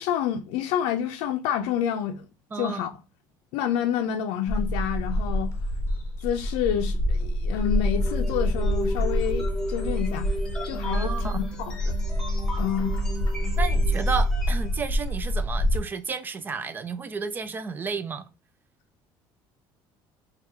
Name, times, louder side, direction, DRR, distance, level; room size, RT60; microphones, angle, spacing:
voice 1, 0.0-2.3 2.5-2.9 3.5-5.5 6.2-10.3 10.7-11.9 12.6-12.9, left 9 dB, 90° left, 0.5 m, -28 dB
voice 2, 2.5-2.9 10.9-11.4 13.6-18.3, right 5 dB, 20° right, 0.4 m, -32 dB
Bird, 4.5-15.8, equal, 30° left, 0.9 m, -26 dB
sound 1, 7.5-14.7, equal, 5° left, 1.0 m, -36 dB
3.4 x 2.4 x 4.4 m
cardioid pair, 145°, 9 cm